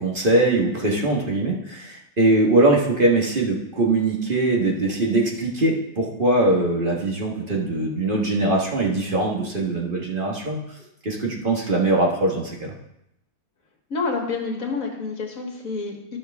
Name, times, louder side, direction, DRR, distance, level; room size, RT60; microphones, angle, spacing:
voice 1, 0.0-10.6 11.0-12.7, right 2 dB, 35° right, -2 dB, 1.5 m, -21 dB
voice 2, 13.9-16.2, left 4 dB, 70° left, 2 dB, 1.8 m, -28 dB
12.5 x 6.0 x 3.5 m, 0.82 s
omnidirectional pair, 1.5 m